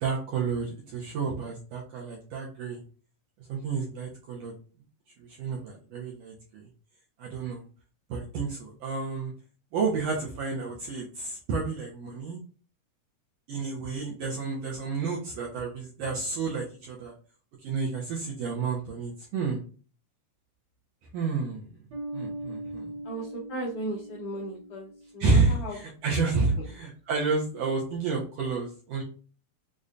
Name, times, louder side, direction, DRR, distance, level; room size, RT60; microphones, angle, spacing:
voice 1, 0.0-2.8 3.5-4.5 5.2-6.6 7.2-7.6 8.1-9.3 9.7-12.4 13.5-17.1 17.6-19.6 21.1-21.7 22.1-22.9 25.2-29.0, right 4 dB, 80° right, -3 dB, 1.5 m, -30 dB
Bass guitar, 21.9-25.4, right 1 dB, 60° right, 1.1 m, -40 dB
voice 2, 23.0-25.8, right 1 dB, 80° left, -4 dB, 1.4 m, -36 dB
5.1 x 2.2 x 2.5 m, 0.39 s
omnidirectional pair, 3.5 m